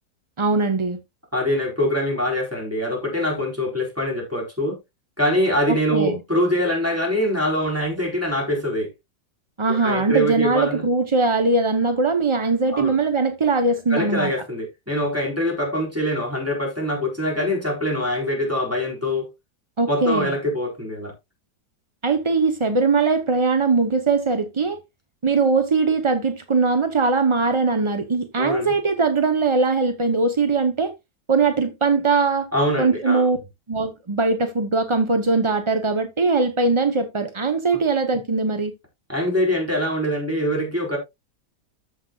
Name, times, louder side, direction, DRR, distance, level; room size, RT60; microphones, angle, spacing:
voice 1, 0.4-1.0 5.7-6.2 9.6-14.3 19.8-20.3 22.0-24.8 25.2-30.9 31.3-32.5 32.8-33.4 33.7-38.7, right 3 dB, 40° right, 0.4 m, -21 dB
voice 2, 1.3-4.8 5.2-8.9 9.7-10.8 12.7-12.9 13.9-19.3 19.9-21.1 28.4-28.7 32.5-33.3 39.1-41.0, equal, 10° right, 4.2 m, -24 dB
14.0 x 6.0 x 2.3 m
omnidirectional pair, 1.8 m